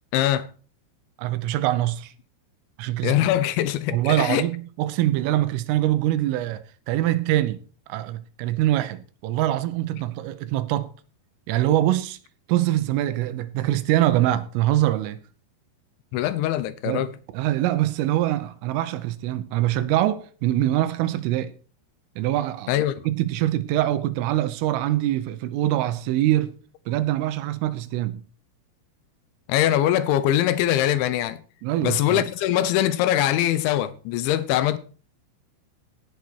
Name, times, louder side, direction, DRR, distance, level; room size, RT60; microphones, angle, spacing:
voice 1, 0.1-0.5 3.0-4.5 16.1-17.1 22.7-23.1 29.5-31.4 31.8-34.8, left 12 dB, 80° left, 2.8 m, -22 dB
voice 2, 1.2-2.1 2.8-3.2 3.9-7.6 7.9-10.9 11.5-12.2 12.5-15.2 16.9-21.5 22.2-22.8 23.1-26.5 26.9-28.2 31.6-32.3, right 14 dB, 80° right, 3.4 m, -24 dB
17.0 x 8.1 x 4.6 m
omnidirectional pair, 6.0 m